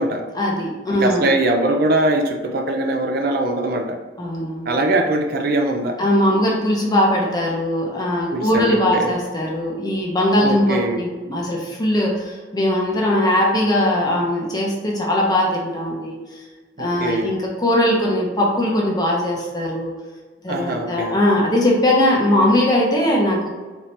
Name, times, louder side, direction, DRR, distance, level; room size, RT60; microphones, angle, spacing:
voice 1, 0.3-1.3 4.2-4.7 6.0-16.4 16.8-19.9 20.4-23.5, left 1 dB, 20° left, -2 dB, 0.8 m, -20 dB
voice 2, 1.0-4.0 4.7-6.0 8.3-9.1 10.4-11.0 16.8-17.3 20.5-21.2, right 2 dB, 55° right, 3 dB, 0.5 m, -21 dB
4.2 x 2.8 x 3.2 m, 1.3 s
head